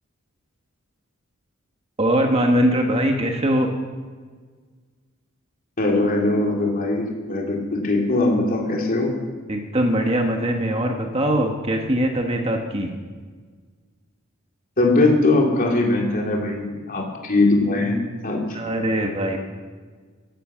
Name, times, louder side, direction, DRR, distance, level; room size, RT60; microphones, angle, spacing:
voice 1, 2.0-3.7 9.5-12.9 18.5-19.4, right 1 dB, 30° right, 3 dB, 1.3 m, -21 dB
voice 2, 5.8-9.1 14.8-18.0 18.2-18.4, left 2 dB, 45° left, 0 dB, 3.1 m, -20 dB
15.0 x 14.0 x 6.3 m, 1.5 s
head